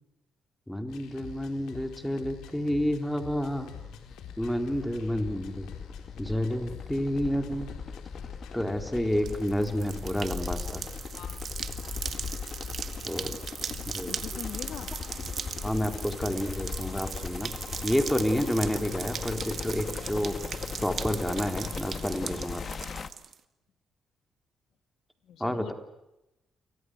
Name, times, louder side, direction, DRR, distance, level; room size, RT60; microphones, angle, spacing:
voice 1, 0.7-3.7 4.4-5.7 6.2-7.7 8.5-10.8 13.0-13.4 13.9-14.2 15.6-17.5 17.8-20.4 20.8-22.6 25.4-25.7, equal, 5° left, 6 dB, 4.1 m, -29 dB
sound 1, 0.9-20.3, left 8 dB, 90° left, 4.2 m, -46 dB
sound 2, 3.3-23.1, left 5 dB, 45° left, 1.5 m, -39 dB
sound 3, 9.1-23.3, right 7 dB, 55° right, 1.9 m, -39 dB
voice 2, 11.1-11.4 11.8-11.9 14.0-14.9 25.2-25.7, left 9 dB, 70° left, 10 dB, 1.7 m, -42 dB
29.0 x 25.0 x 6.5 m, 0.90 s
cardioid pair, 90°, 0 cm